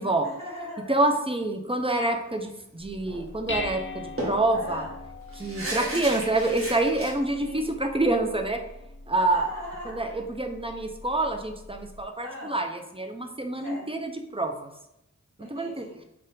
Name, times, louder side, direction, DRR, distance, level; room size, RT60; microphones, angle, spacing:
voice 1, 0.0-0.9 4.5-4.9 5.6-6.0 7.4-7.7 9.1-10.2 12.2-12.5 13.6-13.9 15.4-16.0, equal, 80° right, -9 dB, 1.1 m, -39 dB
voice 2, 0.9-4.8 5.4-8.6 9.1-9.5 9.9-14.7 15.5-15.8, right 2 dB, 20° right, 4 dB, 0.5 m, -27 dB
Dishes pots and pans, 2.8-12.0, left 2 dB, 40° left, 0.6 m, -41 dB
sound 1, 3.0-3.3 3.6-3.7 4.2-7.1, right 1 dB, 45° right, 1.2 m, -35 dB
4.2 x 2.5 x 3.8 m, 0.83 s
wide cardioid pair, 40°, 31 cm